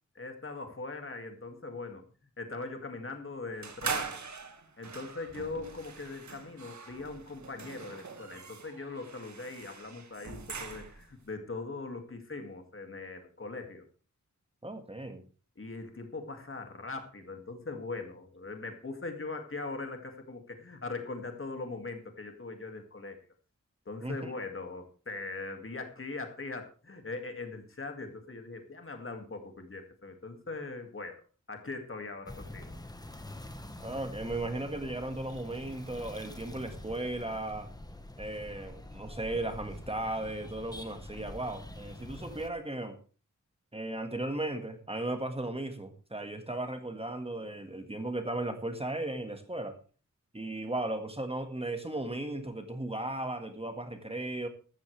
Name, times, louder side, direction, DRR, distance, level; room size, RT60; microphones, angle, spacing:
voice 1, 0.1-2.0 2.4-4.2 4.8-13.8 15.6-23.2 23.9-32.8, left 3 dB, 40° left, 5 dB, 2.2 m, -41 dB
sound 1, 3.6-11.1, right 5 dB, 65° right, 1.8 m, -42 dB
voice 2, 14.6-15.2 24.0-24.3 33.8-37.7 38.2-43.0 43.7-49.8 50.3-54.5, right 1 dB, 20° right, 6 dB, 1.8 m, -36 dB
sound 2, 32.3-42.5, left 1 dB, 10° left, 1.3 m, -45 dB
14.5 x 13.0 x 3.3 m, 0.37 s
wide cardioid pair, 115°, 31 cm